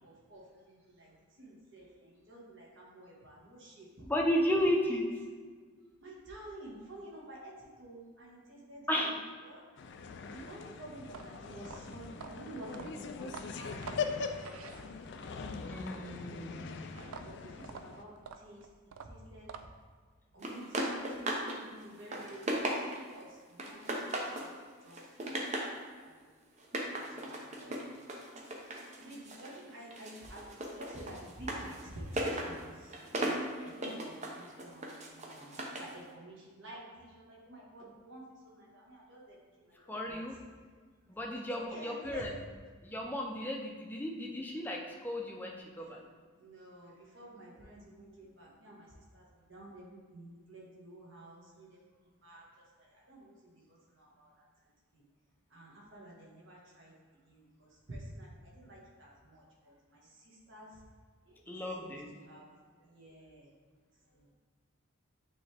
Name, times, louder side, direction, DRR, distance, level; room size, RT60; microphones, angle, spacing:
voice 1, 0.0-4.1 4.8-5.0 6.0-9.1 9.4-9.6 10.0-14.9 15.2-16.1 16.5-18.7 19.0-19.5 20.3-24.0 24.4-25.6 26.0-26.3 26.8-27.8 29.0-40.4 41.1-42.2 45.8-46.0 46.4-51.8 52.2-54.5 54.9-55.0 55.5-56.9 57.3-60.8 61.2-63.5 64.0-64.3, right 1 dB, 60° right, -4 dB, 1.6 m, -51 dB
voice 2, 4.1-5.1 8.9-9.2 15.6-16.6 39.9-40.3 41.1-42.3 42.8-46.0 61.5-62.1, equal, 10° left, -1 dB, 0.6 m, -33 dB
sound 1, 9.8-18.0, left 5 dB, 55° left, 0.4 m, -41 dB
sound 2, 11.0-15.3 17.0-20.0, right 6 dB, 85° right, 0.4 m, -48 dB
sound 3, 20.4-21.6 21.9-23.1 23.6-24.5 24.9-25.8 26.6-29.6 29.9-35.9, right 1 dB, 30° right, 0.7 m, -37 dB
8.8 x 3.4 x 3.4 m, 1.5 s
head